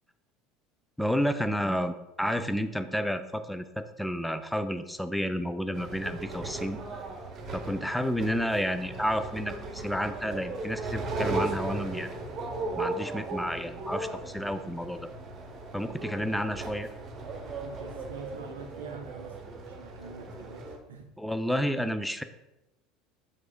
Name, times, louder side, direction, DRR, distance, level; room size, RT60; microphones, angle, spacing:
voice 1, 1.0-6.8 7.5-12.2 12.8-15.1 15.7-16.9 21.2-22.2, equal, 5° left, 10 dB, 0.4 m, -31 dB
sound 1, 5.7-20.8, right 2 dB, 40° right, 0.8 m, -37 dB
voice 2, 17.6-19.4 19.7-21.1, right 5 dB, 80° right, 4 dB, 0.4 m, -45 dB
4.9 x 4.7 x 2.2 m, 0.94 s
figure-of-eight pair, 70°, 0 cm